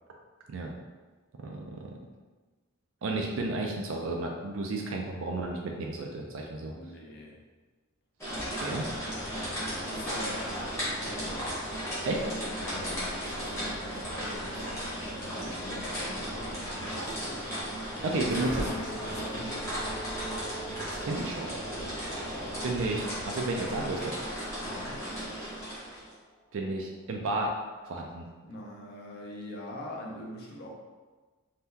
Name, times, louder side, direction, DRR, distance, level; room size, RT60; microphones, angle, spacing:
voice 1, 1.4-1.9 3.0-6.7 8.5-8.9 12.0-12.2 18.0-18.7 20.8-21.6 22.6-24.1 26.5-27.5 27.9-28.2, right 2 dB, 65° right, 1 dB, 0.4 m, -32 dB
voice 2, 6.7-7.4 9.8-11.5 12.6-17.9 18.2-19.9 24.6-25.0 28.4-30.7, left 1 dB, 50° left, -2 dB, 0.5 m, -44 dB
sound 1, 8.2-26.1, equal, 10° left, 0.8 m, -35 dB
sound 2, 8.6-23.8, equal, 75° left, 1.1 m, -49 dB
sound 3, 17.5-27.0, right 1 dB, 85° right, 1.1 m, -44 dB
2.8 x 2.2 x 3.5 m, 1.3 s
head